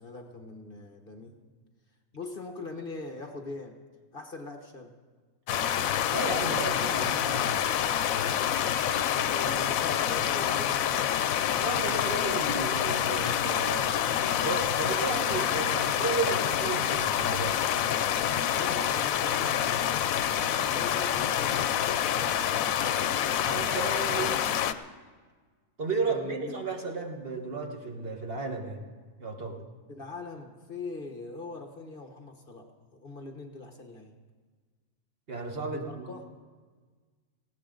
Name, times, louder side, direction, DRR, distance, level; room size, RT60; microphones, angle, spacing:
voice 1, 0.0-1.5 2.1-3.7 4.1-4.9 9.2-11.2 18.5-21.7 26.1-26.6 29.9-34.1 35.7-36.2, left 3 dB, 40° left, 4 dB, 1.4 m, -42 dB
sound 1, 5.5-24.7, left 9 dB, 80° left, 1.1 m, -27 dB
voice 2, 6.1-7.7 9.6-9.7 11.6-14.0 14.4-17.6 23.4-24.4 25.8-28.8 29.2-29.6 35.3-36.0, right 3 dB, 45° right, 1 dB, 1.7 m, -33 dB
19.0 x 16.0 x 3.9 m, 1.5 s
omnidirectional pair, 1.4 m